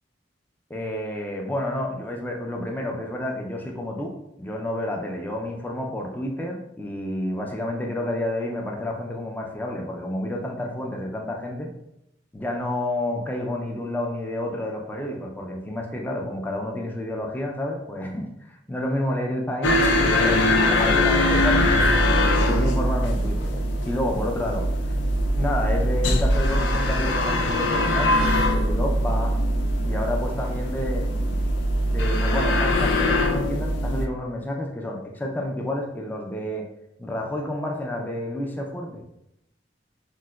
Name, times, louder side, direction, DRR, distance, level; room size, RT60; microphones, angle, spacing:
voice 1, 0.7-11.7 12.3-21.9 22.4-24.7 25.4-29.3 29.8-31.4 31.9-36.7 37.0-39.0, left 1 dB, 10° left, 0 dB, 0.3 m, -30 dB
sound 1, 19.6-34.1, left 1 dB, 85° left, 0.4 m, -22 dB
4.6 x 2.1 x 2.2 m, 0.84 s
head